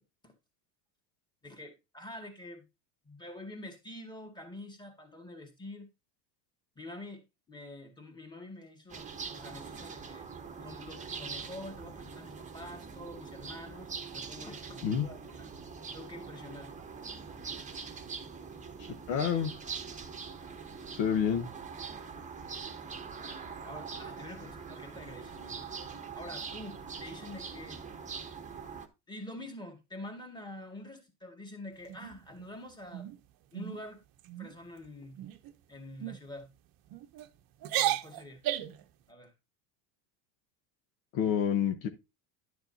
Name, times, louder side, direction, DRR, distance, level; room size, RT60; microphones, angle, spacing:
voice 1, 1.4-2.6 3.0-5.9 6.8-10.3 10.6-15.5 15.9-16.7 23.6-27.8 29.1-33.1 33.5-34.0 34.4-35.2 35.7-36.5 37.7-38.4 39.1-39.3, left 1 dB, 10° left, 2.0 m, -46 dB
sound 1, 8.9-28.9, right 5 dB, 15° right, 1.0 m, -43 dB
voice 2, 19.1-19.5 20.9-21.5 41.1-41.9, left 8 dB, 70° left, 1.3 m, -28 dB
sound 2, 31.9-32.5 32.9-33.2 33.5-33.8 34.2-34.5 35.2-35.5 36.0-36.2 36.9-37.3 37.6-38.8, right 13 dB, 45° right, 0.8 m, -34 dB
11.0 x 6.8 x 2.7 m
supercardioid pair, 120°, 48 cm